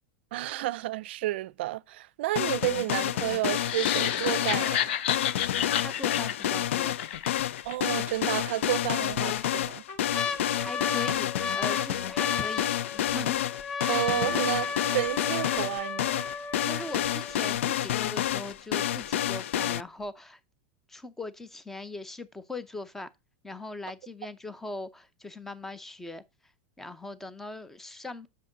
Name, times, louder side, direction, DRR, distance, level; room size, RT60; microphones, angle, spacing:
voice 1, 0.3-5.0 7.6-9.8 13.9-16.2, right 16 dB, 60° right, 0.5 m, -31 dB
sound 1, 2.4-19.8, left 12 dB, 90° left, 0.4 m, -29 dB
sound 2, 3.6-7.8, left 10 dB, 60° left, 0.8 m, -31 dB
voice 2, 5.7-7.0 10.5-12.6 12.9-13.4 13.7-13.8 16.6-20.4 20.9-23.1 23.4-26.2 26.8-28.3, left 2 dB, 5° left, 0.6 m, -40 dB
sound 3, 7.1-7.2 7.6-7.7 8.6-9.2 9.6-17.6 18.3-18.4 18.6-19.0 19.5-19.6, left 5 dB, 40° left, 1.6 m, -34 dB
7.6 x 6.5 x 3.9 m
supercardioid pair, 170°, 7 cm